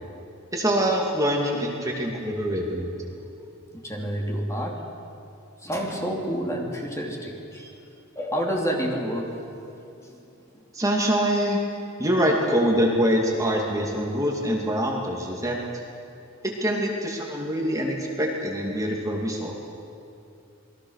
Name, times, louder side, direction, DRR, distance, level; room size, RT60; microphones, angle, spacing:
voice 1, 0.5-3.0 10.7-11.6 12.0-15.6 16.4-19.7, equal, 15° right, -1 dB, 2.4 m, -24 dB
voice 2, 3.7-4.8 5.6-7.8 8.2-9.4 10.1-10.2, equal, 15° left, 0 dB, 2.9 m, -29 dB
28.0 x 21.5 x 6.5 m, 2.8 s
head